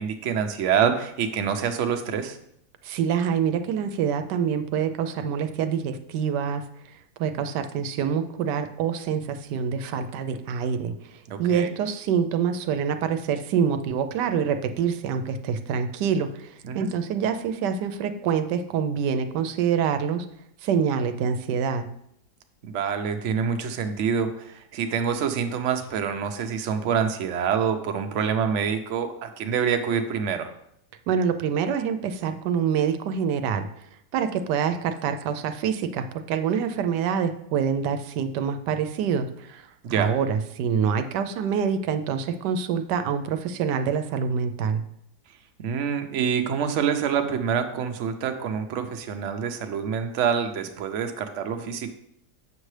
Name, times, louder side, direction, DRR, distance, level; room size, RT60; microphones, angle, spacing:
voice 1, 0.0-2.4 11.3-11.7 16.6-16.9 22.6-30.5 39.8-40.1 45.6-51.9, right 7 dB, 60° right, 6 dB, 0.9 m, -26 dB
voice 2, 2.8-6.6 7.2-10.9 11.4-20.3 20.6-21.9 31.1-33.7 34.1-44.8, right 7 dB, 85° right, 9 dB, 1.2 m, -26 dB
7.4 x 6.4 x 3.2 m, 0.75 s
omnidirectional pair, 1.8 m